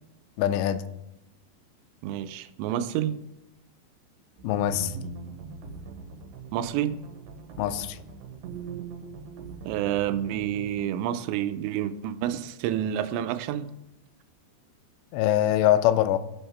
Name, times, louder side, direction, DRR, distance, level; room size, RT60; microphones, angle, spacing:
voice 1, 0.4-0.8 4.4-4.9 7.6-8.0 15.1-16.2, left 12 dB, 85° left, 12 dB, 2.7 m, -23 dB
voice 2, 2.0-3.2 6.5-6.9 9.7-13.7, right 11 dB, 90° right, 11 dB, 2.9 m, -29 dB
sound 1, 4.4-10.9, right 5 dB, 75° right, 2.9 m, -41 dB
14.5 x 5.7 x 4.1 m, 0.89 s
omnidirectional pair, 5.0 m